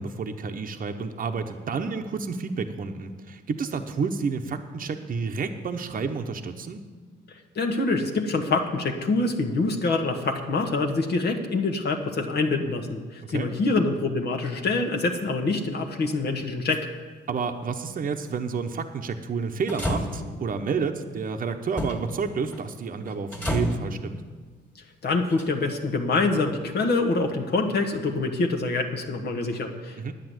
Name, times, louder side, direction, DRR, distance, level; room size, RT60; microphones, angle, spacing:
voice 1, 0.0-6.8 13.2-13.5 17.3-24.2 30.0-30.1, right 5 dB, 45° right, 4 dB, 0.9 m, -30 dB
voice 2, 7.5-16.9 25.0-30.1, left 3 dB, 55° left, 2 dB, 1.3 m, -25 dB
sound 1, 16.4-16.8 19.7-20.5 21.8-22.1 22.5-22.7 23.1-23.9 25.2-25.8 26.8-26.9, equal, 10° left, 2.0 m, -30 dB
10.5 x 8.5 x 7.9 m, 1.4 s
cardioid pair, 90°, 20 cm